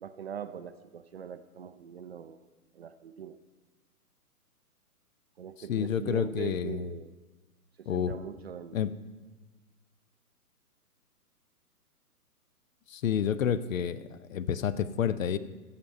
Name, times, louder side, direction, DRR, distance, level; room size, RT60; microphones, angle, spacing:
voice 1, 0.0-2.5 2.7-3.4 5.4-7.1 7.8-8.9, right 8 dB, 45° right, 11 dB, 0.4 m, -41 dB
voice 2, 5.7-6.9 7.9-8.2 8.7-8.9 12.9-15.4, left 8 dB, 60° left, 16 dB, 0.6 m, -29 dB
15.5 x 5.8 x 5.3 m, 1.2 s
hypercardioid pair, 140°, 46 cm